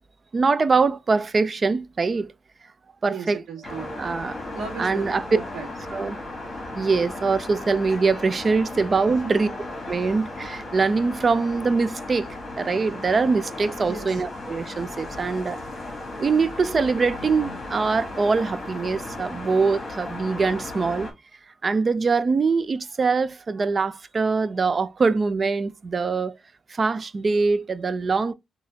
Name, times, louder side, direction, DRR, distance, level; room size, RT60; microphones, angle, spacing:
voice 1, 0.3-2.3 3.0-3.4 4.0-4.4 4.8-5.2 5.9-6.2 6.7-9.5 9.9-15.6 16.2-21.1 21.6-26.3 26.7-28.3, right 4 dB, 30° right, 0.3 m, -23 dB
voice 2, 3.1-4.0 4.5-5.9 9.1-9.4 13.8-14.2 28.0-28.1, right 5 dB, 90° right, 1.6 m, -36 dB
sound 1, 3.6-21.1, left 2 dB, 30° left, 1.9 m, -36 dB
4.1 x 2.9 x 3.4 m
wide cardioid pair, 175°, 0 cm